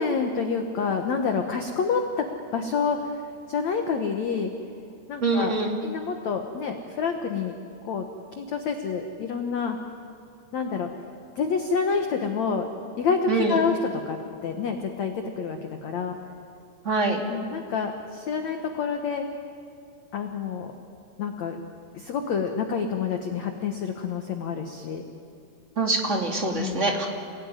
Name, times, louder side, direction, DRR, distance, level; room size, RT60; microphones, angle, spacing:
voice 1, 0.0-2.3 2.5-4.5 5.1-5.5 5.8-7.5 7.8-8.1 8.3-9.8 10.5-10.9 11.4-12.7 13.0-13.8 14.1-14.2 14.4-16.2 17.3-19.2 20.1-20.7 21.2-21.6 21.9-25.0 26.5-27.0, left 5 dB, 85° left, 4 dB, 1.5 m, -28 dB
voice 2, 5.2-5.7 13.3-13.6 16.8-17.2 25.7-27.1, right 3 dB, 25° right, 1 dB, 1.6 m, -24 dB
29.0 x 19.5 x 9.9 m, 2.5 s
omnidirectional pair, 5.3 m